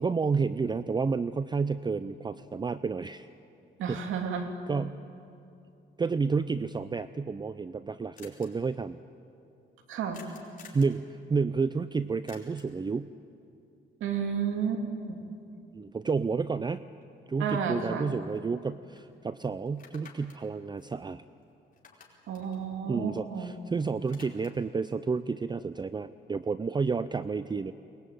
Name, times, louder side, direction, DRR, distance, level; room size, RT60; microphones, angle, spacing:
voice 1, 0.0-3.3 3.9-4.0 4.7-5.0 6.0-9.0 10.7-13.1 15.7-16.8 17.3-21.2 22.9-27.7, right 4 dB, 20° right, 14 dB, 0.5 m, -30 dB
voice 2, 3.8-4.5 9.9-10.2 14.0-15.2 17.4-18.1 22.3-23.5, right 6 dB, 85° right, 5 dB, 2.6 m, -32 dB
sound 1, 8.2-8.5 10.1-11.0 12.3-12.8 17.0-17.1 17.5-18.6 19.0-19.1 19.7-21.4 21.7-23.6 23.8-24.7, left 5 dB, 45° left, 4.7 m, -54 dB
22.5 x 21.0 x 9.1 m, 2.7 s
cardioid pair, 90°, 20 cm